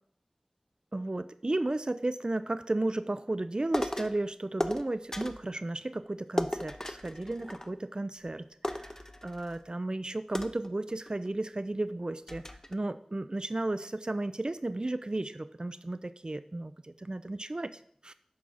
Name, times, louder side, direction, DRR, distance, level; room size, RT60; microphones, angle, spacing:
voice 1, 0.9-12.4 12.7-18.1, right 2 dB, 45° right, 13 dB, 0.4 m, -34 dB
sound 1, 3.7-4.2 4.6-5.5 6.4-8.0 8.3-8.4 8.6-9.6 10.3-11.3 11.8-11.9 12.3-12.7, left 1 dB, 25° left, 0.6 m, -36 dB
9.5 x 5.7 x 4.0 m, 0.63 s
wide cardioid pair, 50°, 2 cm